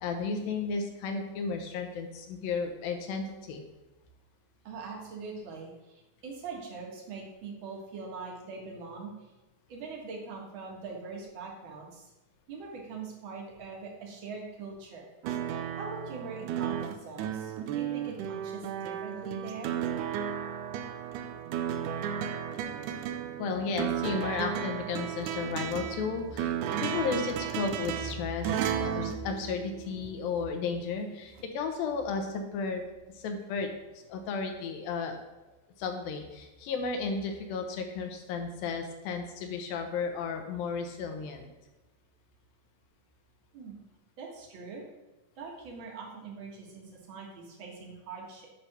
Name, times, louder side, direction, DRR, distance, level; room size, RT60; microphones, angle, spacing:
voice 1, 0.0-3.6 23.4-26.5 26.8-32.9 33.1-33.7 34.1-35.2 35.8-41.5, left 5 dB, 80° left, 5 dB, 2.7 m, -33 dB
voice 2, 4.6-9.1 9.7-12.1 12.5-15.1 15.8-19.7 43.5-43.8 44.2-44.8 45.4-48.5, right 4 dB, 50° right, -1 dB, 1.5 m, -42 dB
sound 1, 15.2-30.2 31.4-31.5, right 9 dB, 80° right, 1.9 m, -34 dB
9.5 x 3.4 x 5.9 m, 1.1 s
omnidirectional pair, 4.1 m